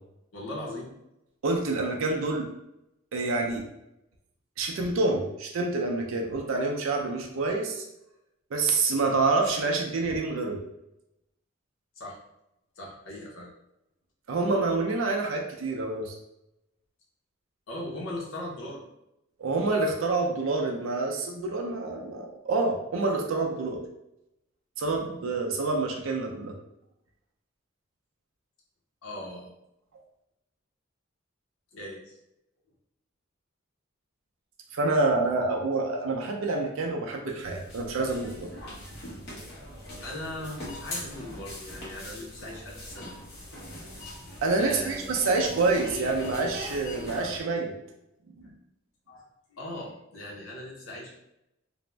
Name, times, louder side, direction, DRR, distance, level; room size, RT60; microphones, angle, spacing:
voice 1, 0.3-0.9 12.0-12.2 12.8-13.5 17.7-18.8 29.0-29.5 31.7-32.2 40.0-43.1 44.6-45.2 49.1-51.2, left 1 dB, 85° left, -3 dB, 0.7 m, -39 dB
voice 2, 1.4-2.5 3.1-3.6 4.6-7.8 8.5-10.6 14.3-16.1 19.4-23.8 24.8-26.5 34.7-38.5 44.4-47.7 48.4-48.5, right 3 dB, 75° right, 1 dB, 0.4 m, -27 dB
sound 1, 37.4-47.4, left 1 dB, 55° left, 0.8 m, -41 dB
2.5 x 2.0 x 3.2 m, 0.85 s
head